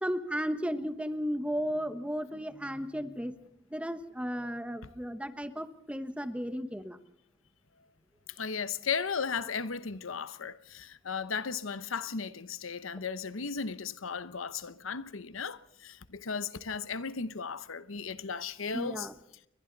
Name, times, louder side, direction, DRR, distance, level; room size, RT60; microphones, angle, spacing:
voice 1, 0.0-3.3 3.7-7.0 18.7-19.1, equal, 5° right, 1.1 m, -34 dB
voice 2, 8.3-19.1, left 5 dB, 80° left, 0.9 m, -36 dB
30.0 x 22.5 x 4.0 m
head